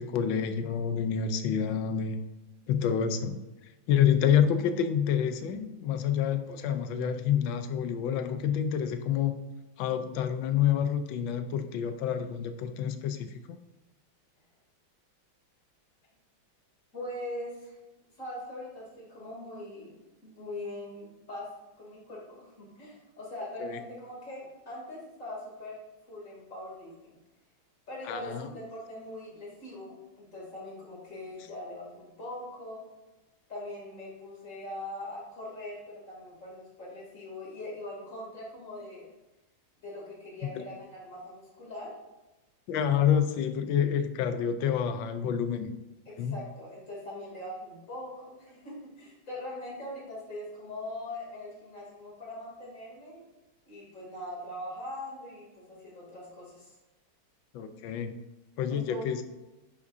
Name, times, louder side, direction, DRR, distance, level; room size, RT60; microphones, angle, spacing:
voice 1, 0.0-2.2 2.7-3.4 3.9-9.4 9.8-13.3 23.6-23.8 28.1-28.5 40.5-40.6 42.7-45.7 46.2-46.4 57.5-58.2 58.6-59.2, left 8 dB, 75° left, 10 dB, 1.3 m, -28 dB
voice 2, 4.5-4.8 16.9-17.7 18.2-19.9 20.2-21.5 21.8-25.8 26.1-27.2 27.9-32.8 33.5-39.1 39.8-42.0 46.1-53.2 53.7-56.7 58.7-59.1, left 1 dB, 40° left, -4 dB, 3.1 m, -41 dB
9.8 x 5.9 x 2.6 m, 1.0 s
omnidirectional pair, 2.2 m